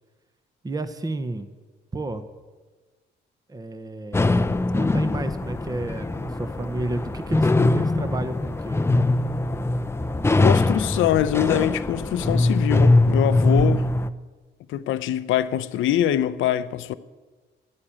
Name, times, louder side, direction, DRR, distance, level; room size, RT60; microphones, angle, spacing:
voice 1, 0.6-1.5 1.9-2.2 3.5-4.4 4.7-8.8, right 2 dB, 20° right, 0.9 m, -31 dB
sound 1, 4.1-14.1, left 2 dB, 10° left, 0.6 m, -22 dB
voice 2, 10.4-13.9 14.7-16.9, left 11 dB, 80° left, 0.6 m, -23 dB
12.0 x 9.7 x 8.8 m
cardioid pair, 90°, 20 cm